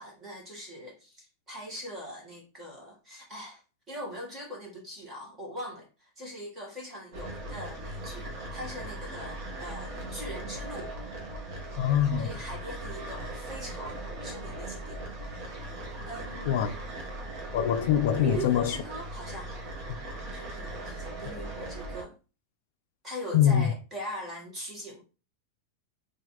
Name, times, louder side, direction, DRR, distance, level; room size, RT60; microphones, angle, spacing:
voice 1, 0.0-3.6 3.9-10.9 12.1-15.0 15.3-15.5 16.0-16.8 18.2-19.5 20.3-22.2 23.0-25.0, equal, 15° right, 1.2 m, -41 dB
sound 1, 7.1-22.0, right 1 dB, 50° right, 1.0 m, -39 dB
voice 2, 11.8-12.3 16.5-16.7 17.5-18.8 23.3-23.7, left 9 dB, 55° left, 0.4 m, -24 dB
4.0 x 2.5 x 2.9 m
supercardioid pair, 175°, 0 cm